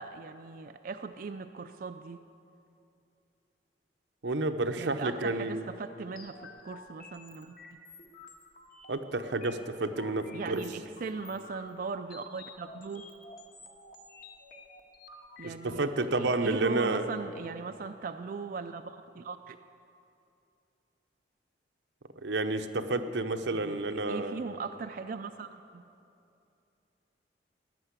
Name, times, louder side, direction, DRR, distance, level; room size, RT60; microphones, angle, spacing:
voice 1, 0.0-2.2 4.8-7.6 10.3-13.1 15.4-19.6 23.5-23.8 24.1-25.8, right 4 dB, 50° right, 8 dB, 0.4 m, -39 dB
voice 2, 4.2-5.7 8.9-10.6 15.4-17.1 22.2-24.4, right 2 dB, 90° right, 7 dB, 0.9 m, -30 dB
sound 1, 6.2-15.8, left 3 dB, 55° left, 1.6 m, -51 dB
15.5 x 10.5 x 8.2 m, 2.7 s
head